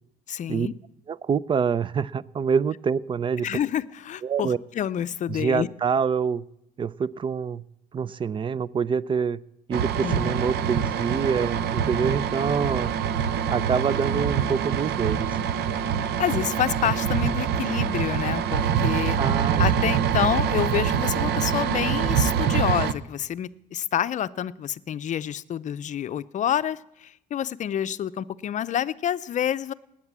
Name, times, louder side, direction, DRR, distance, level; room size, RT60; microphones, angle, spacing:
voice 1, 0.3-0.7 3.4-5.7 10.0-10.3 16.2-19.2 19.6-29.7, left 10 dB, 45° left, 0.6 m, -28 dB
voice 2, 1.1-3.5 4.2-4.6 5.3-6.4 6.8-7.6 7.9-9.4 9.7-12.9 13.5-15.5 19.2-19.9, right 6 dB, 30° right, 0.5 m, -26 dB
sound 1, 9.7-22.9, right 8 dB, 75° right, 0.9 m, -25 dB
19.0 x 8.6 x 7.4 m
cardioid pair, 110°, 17 cm